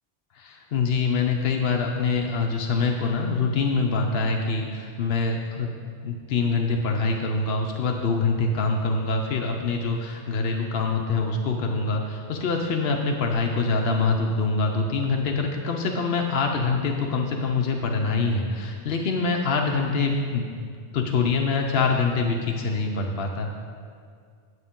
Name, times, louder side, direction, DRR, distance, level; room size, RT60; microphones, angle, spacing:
voice 1, 0.3-5.7 6.0-23.6, left 4 dB, 60° left, 2 dB, 0.8 m, -25 dB
9.5 x 8.0 x 3.6 m, 2.1 s
omnidirectional pair, 1.2 m